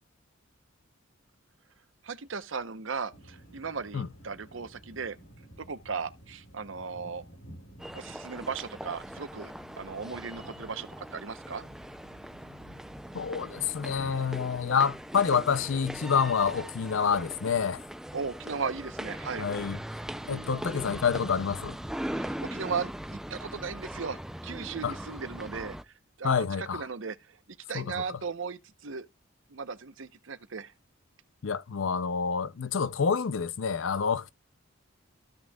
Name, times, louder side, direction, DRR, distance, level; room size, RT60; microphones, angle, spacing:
voice 1, 2.0-5.2 5.6-7.2 7.9-11.6 18.1-19.5 20.1-20.6 22.1-27.4 27.7-29.1 29.5-30.7, right 5 dB, 70° right, 0.8 m, -37 dB
sound 1, 3.1-17.5, right 1 dB, 85° left, 4.3 m, -53 dB
sound 2, 7.8-25.8, equal, ahead, 0.4 m, -40 dB
voice 2, 13.1-17.8 19.4-19.8 20.3-21.8 24.8-24.9 26.2-26.8 27.7-27.9 31.4-34.3, left 6 dB, 70° left, 0.5 m, -28 dB
14.5 x 6.2 x 2.3 m
head